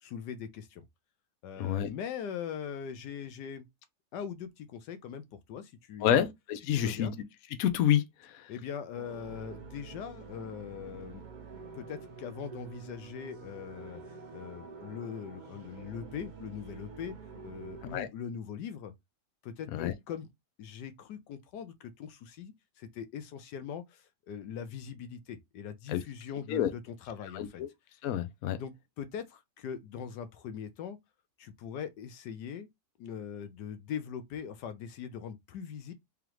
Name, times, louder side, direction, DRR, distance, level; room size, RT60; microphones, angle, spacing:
voice 1, 0.0-0.8 1.4-3.7 4.1-5.2 5.5-6.3 6.7-7.1 8.5-11.2 11.7-17.2 17.4-18.9 19.4-20.3 20.6-27.6 28.6-31.0 31.4-32.7 33.0-35.9, left 8 dB, 90° left, 1.3 m, -41 dB
voice 2, 1.6-1.9 6.0-7.1 7.6-8.5 17.9-18.1 19.7-19.9 25.9-26.0 26.5-26.7 27.3-27.7 28.0-28.6, left 10 dB, 65° left, 1.0 m, -28 dB
sound 1, 8.9-18.1, right 5 dB, 50° right, 0.5 m, -47 dB
3.6 x 3.4 x 3.0 m
omnidirectional pair, 1.8 m